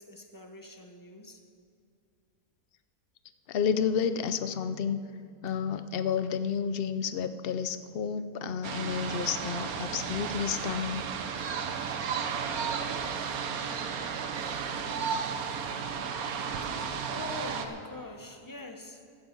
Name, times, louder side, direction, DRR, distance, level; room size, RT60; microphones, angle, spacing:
voice 1, 0.0-1.4 16.7-19.0, left 2 dB, 15° left, 4 dB, 0.8 m, -44 dB
voice 2, 3.5-5.0 5.4-11.1, left 7 dB, 55° left, 11 dB, 0.7 m, -30 dB
sound 1, 8.6-17.7, right 6 dB, 80° right, 1.3 m, -33 dB
15.5 x 13.0 x 4.5 m, 2.4 s
omnidirectional pair, 1.5 m